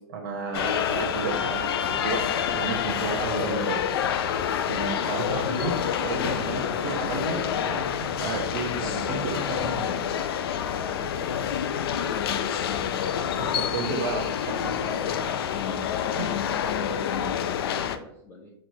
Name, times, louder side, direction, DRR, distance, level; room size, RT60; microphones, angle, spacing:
voice 1, 0.1-2.2 2.5-3.8 4.7-5.7 6.0-9.8 13.1-15.0 16.2-16.3, right 4 dB, 50° right, 1 dB, 0.9 m, -32 dB
sound 1, 0.5-18.0, left 8 dB, 70° left, 0.4 m, -27 dB
voice 2, 10.9-12.7 14.5-15.4 15.8-18.5, left 2 dB, 15° left, -3 dB, 0.5 m, -45 dB
5.9 x 3.2 x 2.8 m, 0.76 s
supercardioid pair, 165°, 13 cm